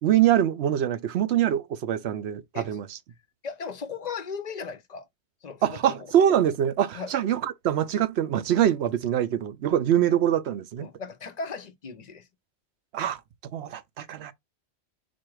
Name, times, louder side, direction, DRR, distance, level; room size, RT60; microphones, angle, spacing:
voice 1, 0.0-3.0 5.6-10.9 12.9-13.2 13.5-14.3, right 10 dB, 80° right, 0.9 m, -24 dB
voice 2, 3.4-5.1 5.4-5.9 6.9-7.1 9.6-9.7 10.8-12.3, left 5 dB, 50° left, 0.6 m, -37 dB
4.3 x 2.4 x 4.6 m
omnidirectional pair, 1.1 m